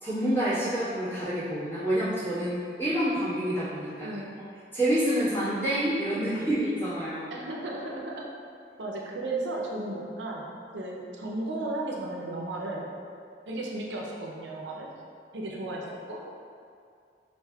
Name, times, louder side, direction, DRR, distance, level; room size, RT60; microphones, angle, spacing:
voice 1, 0.0-4.1 4.7-7.3, right 1 dB, 10° left, -15 dB, 1.2 m, -28 dB
voice 2, 7.3-8.3 8.8-10.4 10.7-12.9 13.5-14.9 15.3-16.2, right 2 dB, 85° right, -2 dB, 0.5 m, -34 dB
4.8 x 2.5 x 2.3 m, 2.4 s
head